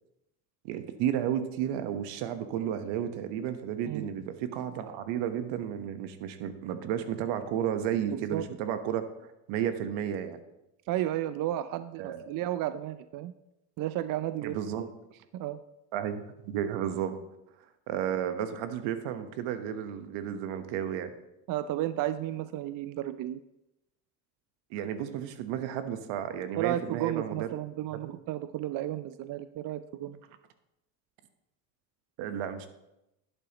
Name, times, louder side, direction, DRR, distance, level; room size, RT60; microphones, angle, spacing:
voice 1, 0.6-10.4 12.0-12.3 14.4-14.9 15.9-17.2 17.9-21.1 24.7-27.5 28.0-28.1 32.2-32.7, right 9 dB, 70° right, 9 dB, 1.2 m, -32 dB
voice 2, 8.1-8.4 10.9-13.3 13.8-14.6 15.3-15.6 21.5-23.4 26.6-30.2, right 13 dB, 45° right, 13 dB, 0.5 m, -33 dB
11.0 x 8.8 x 3.0 m, 0.90 s
supercardioid pair, 90°, 48 cm